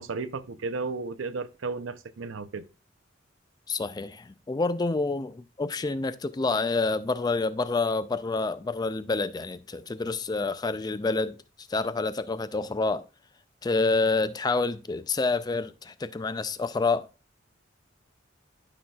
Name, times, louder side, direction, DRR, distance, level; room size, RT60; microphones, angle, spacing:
voice 1, 0.0-2.6, right 4 dB, 85° right, 0.6 m, -34 dB
voice 2, 3.7-13.0 13.6-17.1, left 3 dB, 20° left, 0.3 m, -28 dB
11.5 x 5.6 x 2.3 m
head